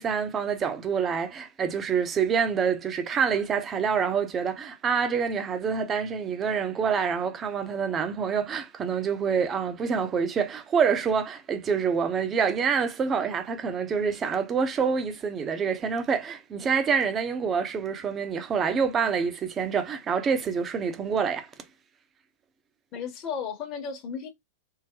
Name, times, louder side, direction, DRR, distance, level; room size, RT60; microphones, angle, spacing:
voice 1, 0.0-21.5, right 6 dB, 25° right, 0.7 m, -26 dB
voice 2, 22.9-24.3, left 6 dB, 35° left, 1.1 m, -34 dB
3.7 x 2.1 x 3.0 m
hypercardioid pair, 115°, 0 cm